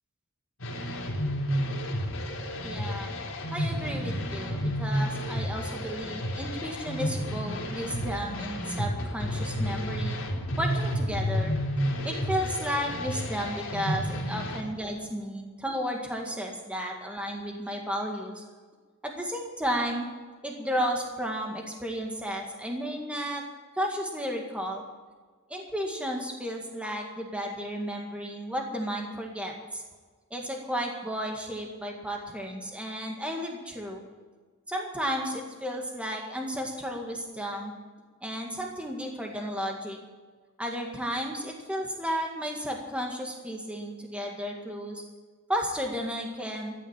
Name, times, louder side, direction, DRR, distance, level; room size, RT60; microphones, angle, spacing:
sound 1, 0.6-14.6, equal, 80° left, 3.8 m, -31 dB
voice 1, 2.6-3.1 3.5-10.2 10.6-11.5 12.0-18.4 19.0-20.1 20.4-23.4 23.8-24.8 25.5-29.8 30.3-34.0 34.7-37.7 38.2-40.0 40.6-45.0 45.5-46.7, equal, 5° right, 1 dB, 1.9 m, -33 dB
14.5 x 9.9 x 8.8 m, 1.4 s
head